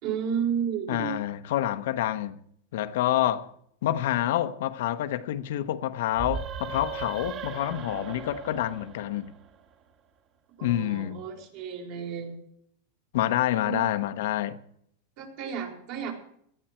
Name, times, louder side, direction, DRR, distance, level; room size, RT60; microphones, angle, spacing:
voice 1, 0.0-1.2 10.6-12.4 13.6-13.8 15.2-16.1, right 7 dB, 60° right, 4.5 m, -32 dB
voice 2, 0.9-2.4 2.7-3.5 3.8-9.3 10.6-11.2 13.1-14.6, left 12 dB, 75° left, 1.0 m, -27 dB
sound 1, 6.1-9.7, right 6 dB, 40° right, 1.9 m, -38 dB
18.0 x 12.0 x 4.5 m
supercardioid pair, 130°, 0 cm